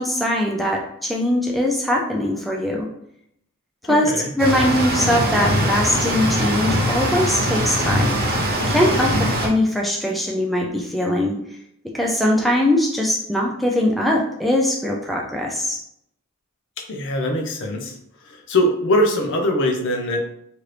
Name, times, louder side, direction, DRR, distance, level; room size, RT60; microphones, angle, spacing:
voice 1, 0.0-2.9 3.8-8.2 8.7-11.4 11.9-15.8, left 1 dB, ahead, -1 dB, 0.3 m, -21 dB
voice 2, 3.9-4.3 16.9-18.0 18.2-20.2, left 1 dB, 60° left, 2 dB, 0.6 m, -22 dB
sound 1, 4.4-9.5, equal, 45° right, 0.7 m, -21 dB
2.9 x 2.5 x 3.2 m, 0.72 s
head